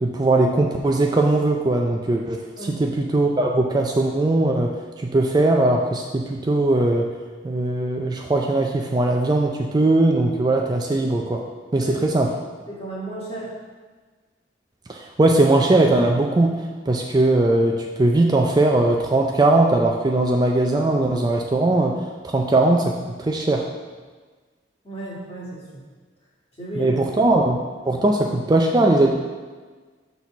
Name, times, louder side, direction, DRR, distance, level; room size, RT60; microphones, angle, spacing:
voice 1, 0.0-7.1 7.4-11.4 11.7-12.3 14.9-16.5 16.9-22.0 22.2-22.9 23.2-23.6 26.8-27.6 27.9-29.1, right 2 dB, 20° right, 1 dB, 0.4 m, -19 dB
voice 2, 12.7-13.6 24.8-25.6 26.6-27.0, right 1 dB, 30° left, -6 dB, 2.0 m, -33 dB
6.2 x 4.1 x 5.9 m, 1.4 s
head